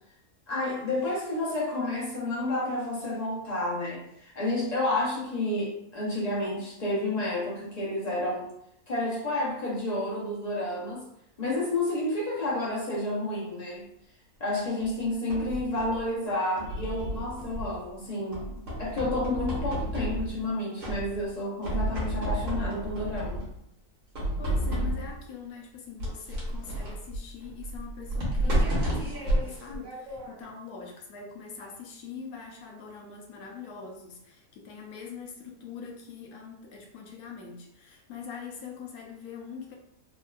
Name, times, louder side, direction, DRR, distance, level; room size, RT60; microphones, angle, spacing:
voice 1, 0.5-8.5 8.9-11.0 11.4-13.8 14.4-18.5 18.8-23.4, left 1 dB, 60° left, -5 dB, 0.4 m, -30 dB
sound 1, 14.8-16.0 16.6-17.9 18.3-20.5 20.8-21.4 21.6-23.6 24.1-25.2 26.0-30.5, right 1 dB, 60° right, 1.3 m, -31 dB
voice 2, 24.4-39.8, left 6 dB, 80° left, 1 dB, 1.1 m, -43 dB
3.5 x 2.2 x 2.2 m, 0.77 s
omnidirectional pair, 1.6 m